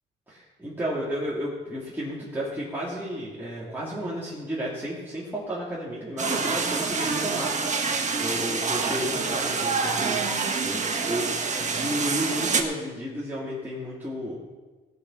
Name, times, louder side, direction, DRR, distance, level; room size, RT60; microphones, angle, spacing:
voice 1, 0.3-10.2 10.6-11.3 11.6-14.4, equal, 10° right, -8 dB, 3.3 m, -32 dB
sound 1, 6.2-12.6, right 4 dB, 35° right, 1.6 m, -27 dB
17.5 x 6.8 x 5.8 m, 1.3 s
cardioid pair, 90°, 20 cm